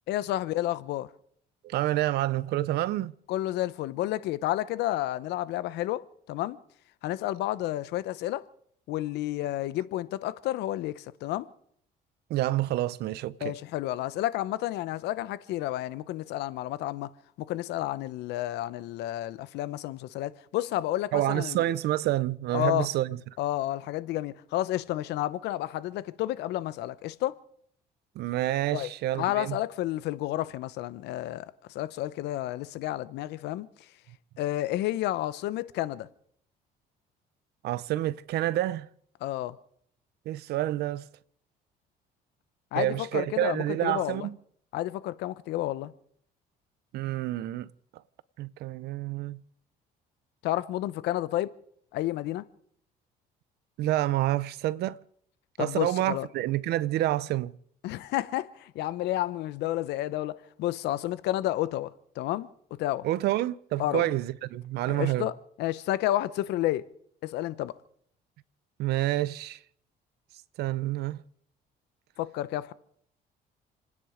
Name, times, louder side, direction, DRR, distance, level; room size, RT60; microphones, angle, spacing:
voice 1, 0.1-1.1 3.3-6.0 6.3-6.6 7.0-8.4 8.9-11.5 13.4-17.1 17.5-21.6 22.5-22.9 23.4-27.3 28.7-28.9 29.2-31.4 31.7-33.7 34.4-36.1 39.2-39.6 42.7-44.3 44.7-45.9 50.4-51.5 51.9-52.4 55.6-56.3 57.8-62.5 62.8-63.0 63.8-64.1 64.9-65.3 65.6-66.8 67.2-67.8 72.2-72.7, left 14 dB, 85° left, 0.9 m, -30 dB
voice 2, 1.6-3.2 12.3-13.6 21.1-23.2 28.2-29.6 37.6-38.9 40.3-41.1 42.7-44.4 46.9-47.7 48.4-49.4 53.8-55.0 55.6-57.5 63.0-65.3 68.8-69.6 70.6-71.2, right 14 dB, 75° right, 0.7 m, -28 dB
29.0 x 9.8 x 5.0 m
cardioid pair, 110°, 17 cm